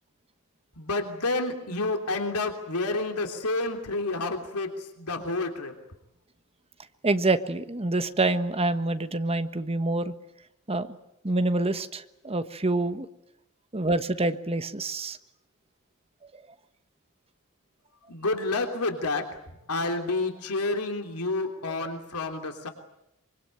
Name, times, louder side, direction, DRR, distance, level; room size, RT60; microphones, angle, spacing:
voice 1, 0.8-5.7 18.1-19.4 19.7-22.7, left 2 dB, 90° left, 5 dB, 3.3 m, -29 dB
voice 2, 7.0-10.1 10.7-10.9 11.2-13.1 13.7-15.2 16.3-16.4, right 2 dB, 25° right, 10 dB, 1.3 m, -26 dB
24.5 x 24.0 x 9.1 m, 0.84 s
head